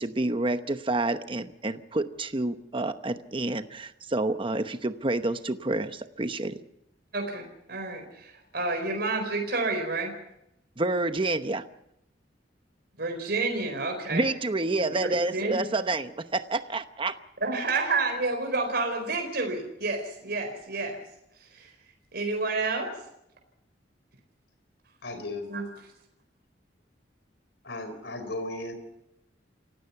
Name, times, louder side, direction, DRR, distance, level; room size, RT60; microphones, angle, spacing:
voice 1, 0.0-6.6 10.8-11.6 14.1-17.1, right 2 dB, 30° right, 10 dB, 0.9 m, -28 dB
voice 2, 7.1-10.1 13.0-14.3 14.8-15.6 17.4-21.0 21.4-21.7 22.1-22.9 25.5-25.6, right 3 dB, 60° right, 3 dB, 4.3 m, -30 dB
voice 3, 25.0-25.5 27.6-28.7, left 2 dB, 70° left, 8 dB, 4.4 m, -35 dB
28.5 x 16.5 x 5.8 m, 0.82 s
head